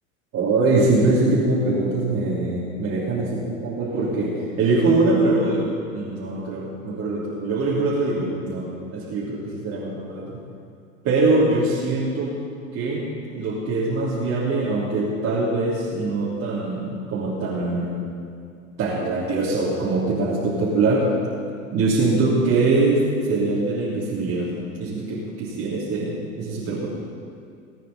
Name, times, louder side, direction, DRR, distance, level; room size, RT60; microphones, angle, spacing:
voice 1, 0.3-4.3 4.6-10.2 11.0-12.3 12.7-13.0 13.3-18.0 18.8-21.1 21.7-23.0 23.3-24.5 24.7-26.9, right 3 dB, 40° right, -9 dB, 3.2 m, -23 dB
19.5 x 9.1 x 4.2 m, 2.4 s
hypercardioid pair, 90°, 40 cm